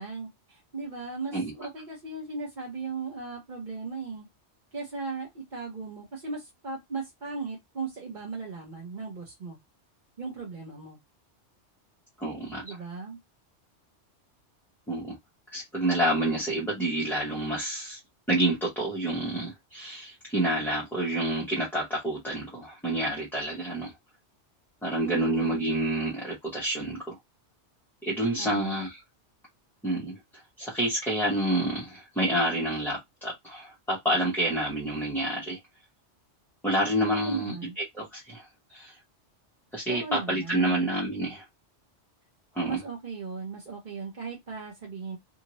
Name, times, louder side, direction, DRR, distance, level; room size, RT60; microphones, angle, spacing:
voice 1, 0.0-4.3 4.7-9.6 10.2-11.0 12.6-13.2 25.0-25.7 28.4-28.8 37.1-37.8 39.9-40.9 42.6-45.2, right 4 dB, 45° right, 1.0 m, -37 dB
voice 2, 12.2-12.8 14.9-15.2 15.5-18.0 18.3-23.9 24.8-27.2 28.0-29.0 29.8-35.6 36.6-39.0 39.7-41.4 42.5-42.8, right 1 dB, ahead, 0.9 m, -28 dB
2.8 x 2.5 x 3.0 m
omnidirectional pair, 1.2 m